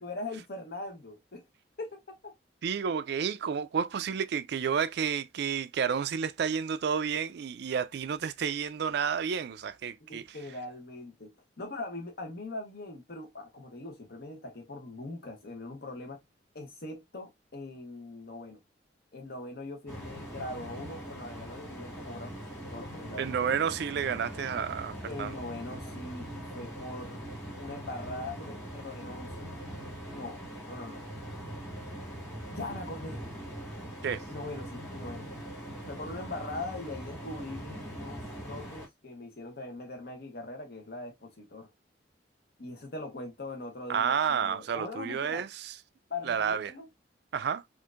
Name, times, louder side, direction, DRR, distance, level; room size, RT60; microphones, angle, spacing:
voice 1, 0.0-1.4 1.8-2.3 10.0-16.2 16.5-18.6 19.1-23.3 25.1-27.2 27.6-29.5 30.1-31.0 32.5-33.2 34.3-35.3 35.9-41.7 42.6-45.5 46.1-46.9, left 2 dB, 60° left, 1.0 m, -41 dB
voice 2, 2.6-10.2 23.2-25.3 34.0-34.2 43.9-45.7 46.3-46.7 47.3-47.6, right 7 dB, 65° right, 0.4 m, -30 dB
sound 1, 19.9-38.9, right 1 dB, 15° left, 1.5 m, -42 dB
4.4 x 2.5 x 2.4 m
head